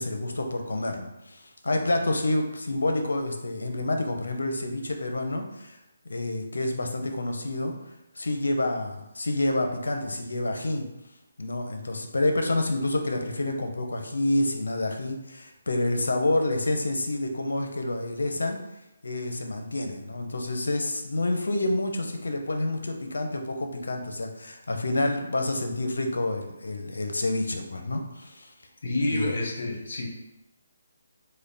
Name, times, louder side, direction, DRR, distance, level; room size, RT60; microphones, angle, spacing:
voice 1, 0.0-5.8 6.1-7.7 8.2-10.9 11.4-18.6 19.0-28.5 29.1-29.3, left 2 dB, 90° left, 4 dB, 0.6 m, -28 dB
voice 2, 28.8-30.1, left 2 dB, 65° left, 0 dB, 1.0 m, -28 dB
3.2 x 2.2 x 3.9 m, 0.90 s
hypercardioid pair, 160°, 0 cm